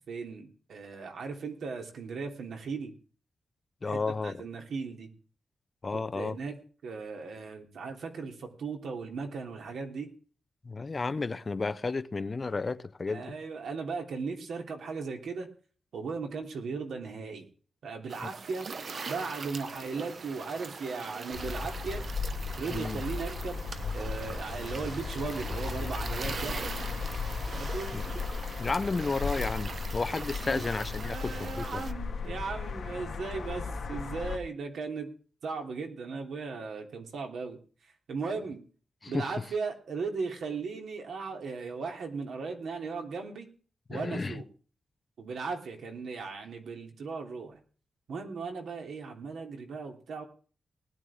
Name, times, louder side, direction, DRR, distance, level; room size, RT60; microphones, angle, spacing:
voice 1, 0.1-2.9 3.8-5.1 5.9-6.6 6.8-10.1 13.1-15.5 15.9-17.4 17.8-18.7 19.1-22.0 22.6-23.7 23.9-26.6 27.6-27.9 30.4-30.6 30.9-35.1 35.4-37.6 37.8-38.6 39.1-43.5 43.9-44.4 45.2-47.6 48.1-50.2, right 4 dB, 90° right, 3.3 m, -37 dB
voice 2, 3.8-4.4 5.8-6.4 10.6-13.3 18.2-18.3 22.7-23.0 27.9-28.0 28.6-31.8 39.0-39.3 43.9-44.4, left 3 dB, 30° left, 0.6 m, -32 dB
sound 1, 18.1-31.9, right 4 dB, 45° right, 0.9 m, -41 dB
sound 2, 21.3-34.4, left 5 dB, 50° left, 2.4 m, -36 dB
19.5 x 11.0 x 3.6 m
wide cardioid pair, 170°, 0 cm